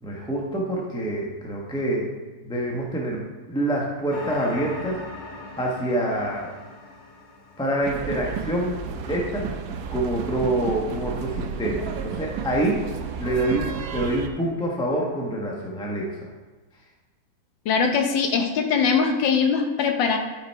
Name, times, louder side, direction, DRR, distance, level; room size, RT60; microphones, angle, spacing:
voice 1, 0.0-2.1 2.4-3.2 3.5-5.0 5.6-6.5 7.6-8.7 9.1-9.5 9.9-12.8 13.2-16.1, right 1 dB, 5° left, -2 dB, 0.7 m, -26 dB
sound 1, 4.1-8.6, left 1 dB, 45° left, 1.8 m, -40 dB
sound 2, 7.8-14.3, right 6 dB, 65° right, 1.0 m, -32 dB
voice 2, 17.6-20.2, left 5 dB, 70° left, 4 dB, 1.5 m, -21 dB
12.0 x 4.9 x 4.6 m, 1.2 s
omnidirectional pair, 2.2 m